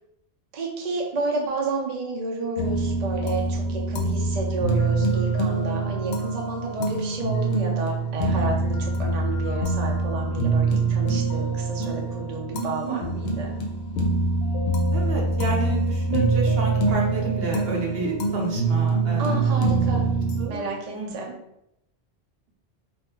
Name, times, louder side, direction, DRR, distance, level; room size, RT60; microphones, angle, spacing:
voice 1, 0.5-13.5 19.2-20.1 20.5-21.4, right 2 dB, 50° right, 0 dB, 0.6 m, -31 dB
sound 1, 2.6-20.4, right 3 dB, 85° left, 0.8 m, -24 dB
voice 2, 12.8-13.5 14.9-20.0 20.4-21.1, right 4 dB, 70° right, -1 dB, 0.9 m, -31 dB
2.5 x 2.3 x 3.7 m, 0.82 s
omnidirectional pair, 1.1 m